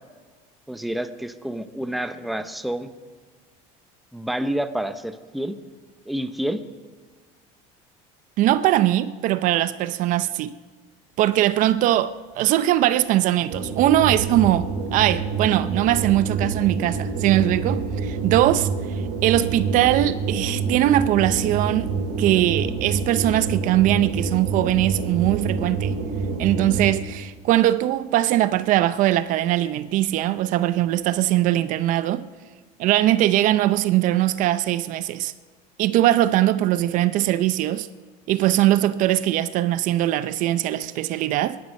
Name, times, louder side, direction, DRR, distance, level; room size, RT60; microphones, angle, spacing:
voice 1, 0.7-2.9 4.1-5.6 6.1-6.6, right 1 dB, ahead, 0.7 m, -28 dB
voice 2, 8.4-10.5 11.2-18.7 19.2-25.9 26.4-32.3 32.8-35.3 35.8-37.9 38.3-41.6, right 14 dB, 50° right, 0.5 m, -21 dB
sound 1, 13.5-27.2, right 4 dB, 70° right, 3.4 m, -27 dB
22.0 x 11.5 x 5.3 m
cardioid pair, 140°, 17 cm